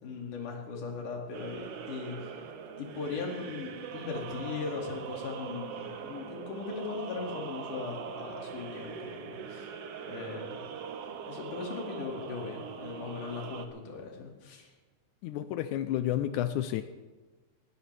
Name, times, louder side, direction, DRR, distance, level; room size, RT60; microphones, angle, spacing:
voice 1, 0.0-2.4 2.8-9.7 10.1-10.6 11.3-14.7, left 4 dB, 60° left, 0 dB, 3.7 m, -39 dB
sound 1, 1.3-13.7, right 7 dB, 85° right, 1.3 m, -42 dB
voice 2, 15.2-16.8, left 12 dB, 90° left, 10 dB, 1.7 m, -30 dB
19.0 x 18.0 x 3.4 m, 1.2 s
omnidirectional pair, 4.2 m